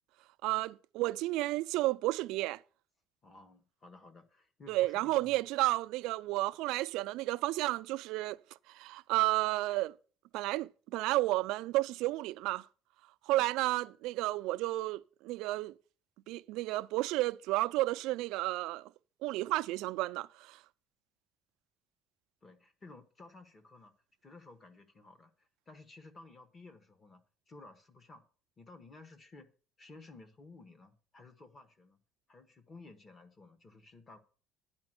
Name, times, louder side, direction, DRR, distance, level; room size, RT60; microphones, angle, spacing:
voice 1, 0.4-2.6 4.7-8.4 8.7-9.9 10.3-12.6 13.3-15.7 16.3-18.9 19.2-20.6, right 18 dB, 75° right, 0.4 m, -32 dB
voice 2, 3.2-5.5 13.4-13.5 22.4-23.9 24.2-28.2 28.6-29.5 29.8-32.0 32.3-34.2, left 3 dB, 20° left, 1.2 m, -55 dB
10.5 x 5.1 x 7.7 m
cardioid pair, 175°, 0 cm